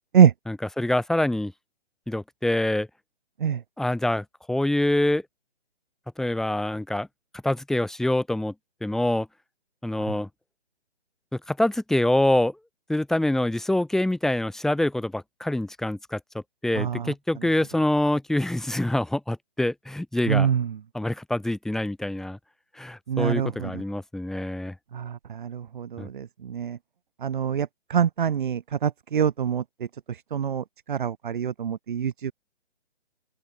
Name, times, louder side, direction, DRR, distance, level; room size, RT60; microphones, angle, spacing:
voice 1, 0.5-1.5 2.1-2.9 3.8-5.2 6.2-7.1 7.4-8.5 8.8-9.3 9.8-10.3 11.5-12.6 12.9-20.5 20.9-22.4 22.8-24.7 26.0-26.1, left 1 dB, ahead, 3.5 m, -25 dB
voice 2, 20.3-20.6 23.1-23.5 25.4-25.5 25.8-26.0 26.5-26.8 27.2-29.6 30.3-30.6 30.9-32.3, right 8 dB, 45° right, 1.5 m, -23 dB
open air
hypercardioid pair, 160°, 34 cm